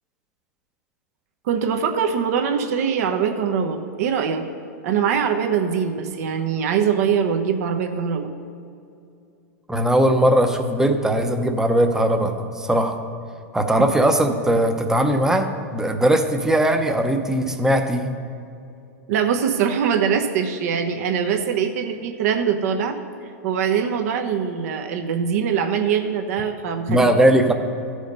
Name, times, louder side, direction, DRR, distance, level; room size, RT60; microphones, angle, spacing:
voice 1, 1.4-4.4 4.8-8.3 19.1-23.0 23.4-27.1, right 7 dB, 65° right, 5 dB, 1.0 m, -22 dB
voice 2, 9.7-13.0 13.5-18.1 26.9-27.5, right 1 dB, 5° right, 5 dB, 0.7 m, -19 dB
14.0 x 5.0 x 5.4 m, 2.6 s
hypercardioid pair, 120°, 9 cm